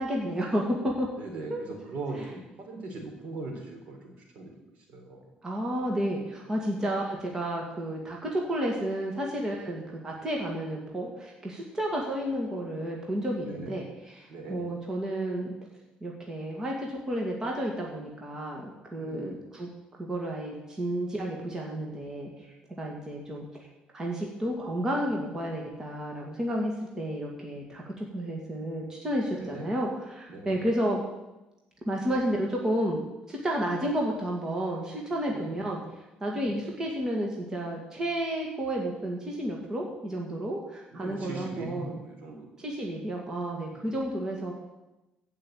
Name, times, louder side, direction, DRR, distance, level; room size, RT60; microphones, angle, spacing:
voice 1, 0.0-1.1 1.5-1.6 5.4-15.5 16.0-19.7 20.0-22.5 22.8-23.5 23.9-31.0 31.9-33.0 33.3-35.8 36.2-42.0 42.6-44.5, right 1 dB, 20° right, -1 dB, 2.2 m, -31 dB
voice 2, 1.2-4.5 4.9-5.2 13.4-13.8 14.3-14.6 19.0-19.3 29.3-29.7 30.3-30.6 35.3-35.5 36.3-36.5 40.9-42.5 43.7-43.8, right 3 dB, 60° right, 2 dB, 3.6 m, -40 dB
15.0 x 5.7 x 8.9 m, 0.99 s
cardioid pair, 140°, 3 cm